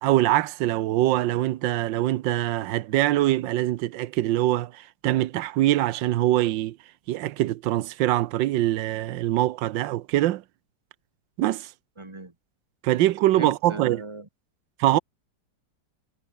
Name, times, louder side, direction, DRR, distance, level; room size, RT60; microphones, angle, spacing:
voice 1, 0.0-6.8 7.1-10.4 11.4-11.7 12.8-14.0 14.8-15.0, right 14 dB, 80° right, 1.4 m, -23 dB
voice 2, 12.0-12.3 13.3-14.3, right 2 dB, 15° right, 2.4 m, -37 dB
omnidirectional pair, 2.0 m